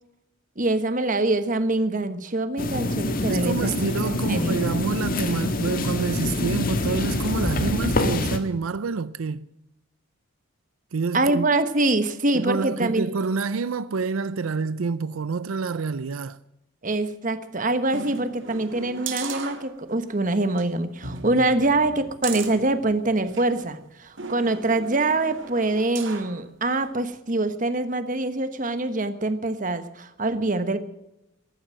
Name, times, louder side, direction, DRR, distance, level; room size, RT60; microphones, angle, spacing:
voice 1, 0.6-3.7 4.0-4.6 11.1-13.1 16.8-30.8, right 2 dB, 40° right, 1.2 m, -24 dB
sound 1, 2.6-8.4, left 2 dB, 45° left, 1.5 m, -25 dB
voice 2, 3.3-9.5 10.9-11.5 12.3-16.4, right 4 dB, 90° right, 0.5 m, -27 dB
sound 2, 17.9-20.1 20.5-20.6 21.0-23.5 24.2-26.4 26.8-26.9, right 5 dB, 70° right, 2.0 m, -37 dB
14.5 x 11.5 x 7.7 m
head